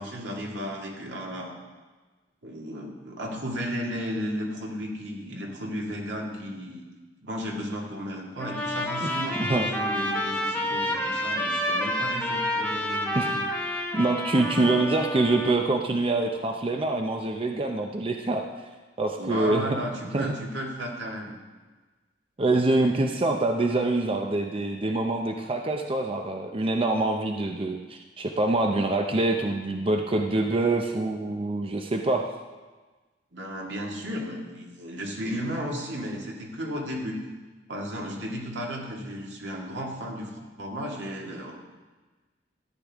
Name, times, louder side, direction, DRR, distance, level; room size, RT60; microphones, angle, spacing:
voice 1, 0.0-1.6 2.4-6.8 7.2-13.5 19.2-21.3 33.3-37.2 37.7-41.5, equal, 80° right, -1 dB, 2.1 m, -34 dB
Trumpet, 8.4-15.6, left 1 dB, 10° left, 1.1 m, -29 dB
voice 2, 9.4-9.7 13.1-13.3 13.9-18.5 19.0-19.8 20.1-20.3 22.4-32.3, right 2 dB, 30° right, 3 dB, 0.5 m, -25 dB
13.0 x 9.9 x 3.6 m, 1.3 s
head